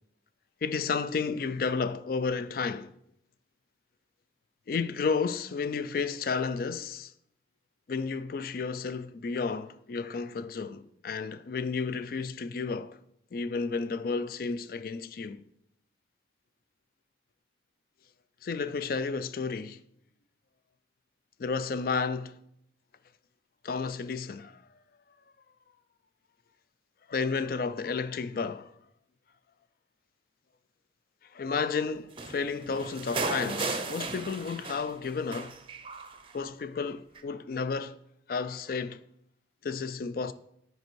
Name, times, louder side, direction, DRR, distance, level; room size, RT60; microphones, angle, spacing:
voice 1, 0.6-2.9 4.7-7.1 7.9-13.0 13.3-15.4 18.4-19.8 21.4-22.4 23.6-24.6 27.1-28.7 31.3-35.6 36.3-38.0 38.3-39.0 39.6-40.3, left 5 dB, 50° left, 0.4 m, -32 dB
sound 1, 32.2-35.0 35.3-36.3 37.2-37.3, right 3 dB, 30° right, 0.6 m, -35 dB
7.8 x 5.2 x 4.6 m
head